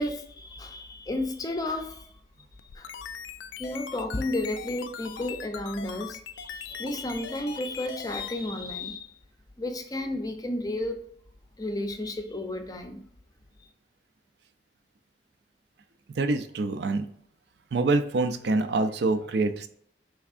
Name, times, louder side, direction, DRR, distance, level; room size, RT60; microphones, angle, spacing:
voice 1, 0.0-2.1 2.7-2.9 3.6-9.1 9.6-11.0 11.6-13.0, left 1 dB, 20° left, 6 dB, 0.5 m, -32 dB
sound 1, 2.6-8.4, left 8 dB, 90° left, 0.3 m, -41 dB
voice 2, 16.1-17.1 17.7-19.7, right 3 dB, 65° right, 10 dB, 0.4 m, -25 dB
4.5 x 3.4 x 2.4 m, 0.65 s
head